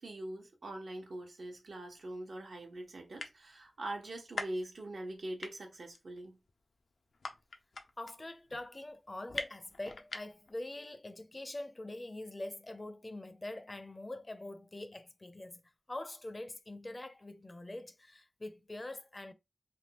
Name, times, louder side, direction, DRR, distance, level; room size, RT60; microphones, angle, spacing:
voice 1, 0.0-6.4, right 1 dB, 75° right, 1.0 m, -43 dB
sound 1, 1.7-1.8 2.4-2.5 2.7-2.8 3.0-3.7 4.1-5.1 5.4-10.6, left 3 dB, 80° left, 0.5 m, -42 dB
voice 2, 8.0-19.3, left 1 dB, 30° left, 0.5 m, -44 dB
3.4 x 2.3 x 2.8 m
wide cardioid pair, 80°, 0 cm